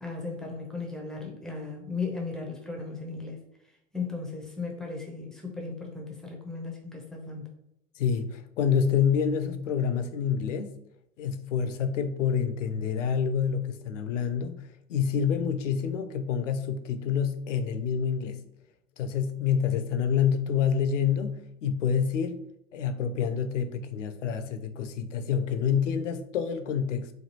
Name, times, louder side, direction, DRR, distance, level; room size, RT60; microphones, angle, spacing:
voice 1, 0.0-3.4 3.9-7.5, left 4 dB, ahead, 0.5 m, -36 dB
voice 2, 8.0-10.7 11.2-18.4 19.0-22.4 22.7-27.1, left 7 dB, 75° left, 0.5 m, -27 dB
3.2 x 2.3 x 2.8 m
figure-of-eight pair, 90°, 38 cm